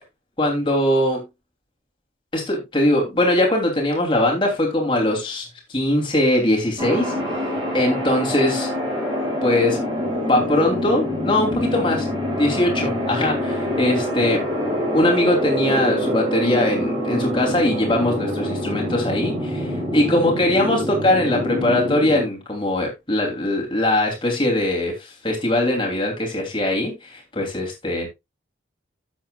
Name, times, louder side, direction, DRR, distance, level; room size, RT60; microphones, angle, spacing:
voice 1, 0.4-1.2 2.3-7.2 7.7-8.7 9.4-9.8 10.3-12.1 12.4-14.4 14.9-28.1, left 1 dB, 25° left, 3.0 m, -21 dB
sound 1, 6.8-22.2, equal, 25° right, 4.5 m, -25 dB
12.0 x 8.1 x 2.3 m
head